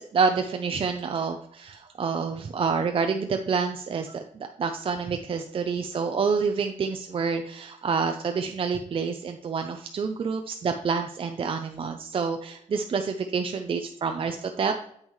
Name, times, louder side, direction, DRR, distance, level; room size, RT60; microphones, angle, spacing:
voice 1, 0.0-14.7, right 5 dB, 45° right, 5 dB, 0.5 m, -28 dB
7.9 x 5.4 x 3.1 m, 0.68 s
cardioid pair, 105°, 13 cm